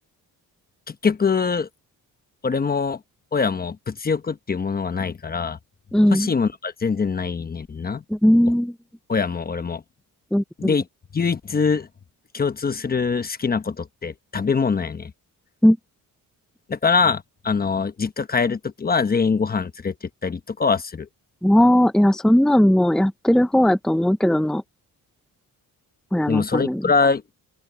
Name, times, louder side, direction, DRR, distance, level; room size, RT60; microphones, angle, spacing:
voice 1, 0.9-1.7 2.4-3.0 3.3-5.6 6.1-8.0 9.1-9.8 10.6-10.8 11.1-11.9 12.3-15.1 16.7-21.1 26.3-27.2, left 5 dB, 25° left, 1.0 m, -23 dB
voice 2, 5.9-6.3 8.1-8.7 10.3-10.8 15.6-15.8 21.4-24.6 26.1-26.8, equal, ahead, 0.8 m, -18 dB
open air
cardioid pair, 135°, 35 cm